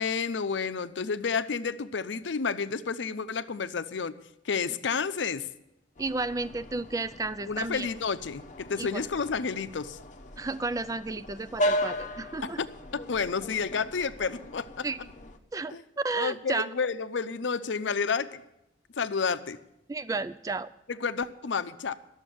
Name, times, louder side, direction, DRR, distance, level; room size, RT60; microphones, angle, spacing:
voice 1, 0.0-4.1 4.4-5.5 7.5-10.0 12.6-12.7 12.9-14.9 15.7-15.8 16.1-18.4 19.0-19.6 20.9-21.9, left 5 dB, 80° left, 12 dB, 0.6 m, -30 dB
sound 1, 6.0-15.4, equal, 40° left, 0.8 m, -36 dB
voice 2, 6.0-7.9 8.8-9.0 10.4-12.6 14.8-15.0 15.5-16.7 19.9-20.7, right 3 dB, 20° right, 14 dB, 0.4 m, -32 dB
11.5 x 7.2 x 9.3 m, 0.86 s
head